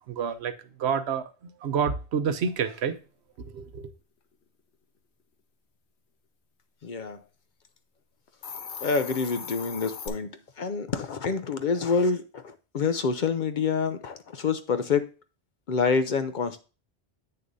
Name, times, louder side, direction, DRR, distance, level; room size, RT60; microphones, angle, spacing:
voice 1, 0.1-0.5 0.8-1.3 1.6-3.0 3.4-3.8, right 7 dB, 85° right, 1.0 m, -28 dB
voice 2, 6.8-7.2 8.8-10.3 10.6-15.0 15.7-16.6, left 5 dB, 55° left, 0.7 m, -27 dB
Hiss, 8.3-10.1, left 6 dB, 90° left, 1.2 m, -38 dB
8.6 x 6.6 x 2.6 m
omnidirectional pair, 1.1 m